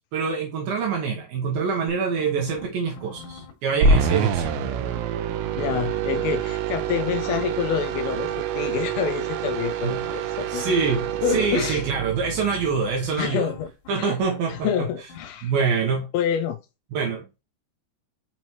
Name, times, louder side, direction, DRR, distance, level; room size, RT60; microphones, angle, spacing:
voice 1, 0.1-4.6 9.8-10.0 10.5-13.6 13.9-14.9 15.4-16.1 16.9-17.3, right 5 dB, 70° right, 2.4 m, -25 dB
sound 1, 1.9-4.1 4.5-6.5 6.9-8.3 9.2-14.8 15.1-15.3, left 4 dB, 55° left, 3.0 m, -44 dB
sound 2, 3.8-13.2, right 5 dB, 90° right, 3.0 m, -26 dB
voice 2, 5.6-10.7 11.2-11.8 13.1-13.7 14.0-14.1 14.5-15.5 16.1-16.6, left 7 dB, 90° left, 2.1 m, -27 dB
6.1 x 5.6 x 3.0 m
omnidirectional pair, 5.1 m